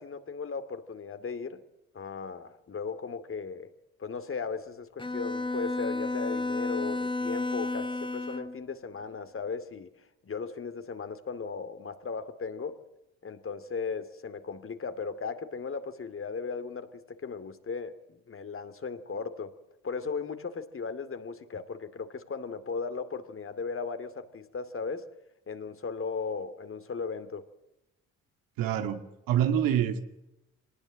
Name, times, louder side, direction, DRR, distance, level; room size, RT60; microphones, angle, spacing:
voice 1, 0.0-1.6 1.9-3.7 4.0-9.9 10.2-12.8 13.2-19.6 19.8-25.1 25.5-27.5, left 5 dB, 40° left, 10 dB, 2.6 m, -37 dB
Bowed string instrument, 5.0-8.6, left 2 dB, 15° left, 1.4 m, -32 dB
voice 2, 28.6-30.0, right 10 dB, 85° right, 8 dB, 2.3 m, -26 dB
24.5 x 19.5 x 7.6 m, 0.90 s
supercardioid pair, 75°, 33 cm